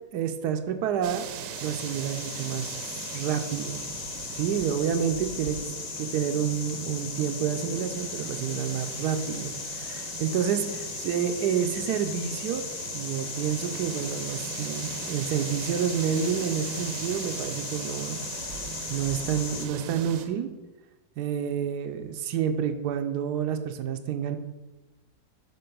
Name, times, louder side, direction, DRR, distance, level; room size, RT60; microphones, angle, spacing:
voice 1, 0.1-1.3 1.6-2.8 3.1-3.9 4.3-5.6 6.0-12.6 12.9-18.2 18.9-20.5 21.2-24.4, right 8 dB, 90° right, 7 dB, 1.2 m, -29 dB
sound 1, 1.0-20.3, right 7 dB, 65° right, 0.9 m, -39 dB
sound 2, 1.5-19.7, left 7 dB, 70° left, 1.1 m, -38 dB
6.7 x 3.8 x 5.3 m, 1.2 s
omnidirectional pair, 1.7 m